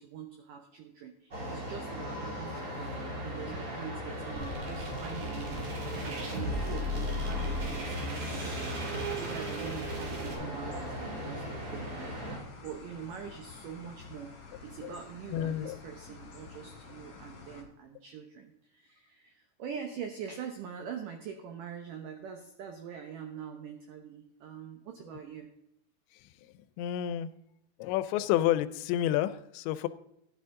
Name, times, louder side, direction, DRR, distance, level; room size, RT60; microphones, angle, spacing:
voice 1, 0.0-8.5 9.2-11.9 12.6-14.3 14.6-25.5, right 7 dB, 85° right, 5 dB, 1.8 m, -44 dB
sound 1, 1.3-12.4, equal, 25° right, 2.5 m, -38 dB
sound 2, 4.3-10.3, equal, 55° right, 4.3 m, -37 dB
sound 3, 7.2-17.6, left 5 dB, 40° left, 2.4 m, -49 dB
voice 2, 15.3-15.8 26.2-27.3 27.8-29.9, left 12 dB, 85° left, 14 dB, 2.9 m, -30 dB
14.5 x 10.5 x 3.7 m, 0.79 s
omnidirectional pair, 5.1 m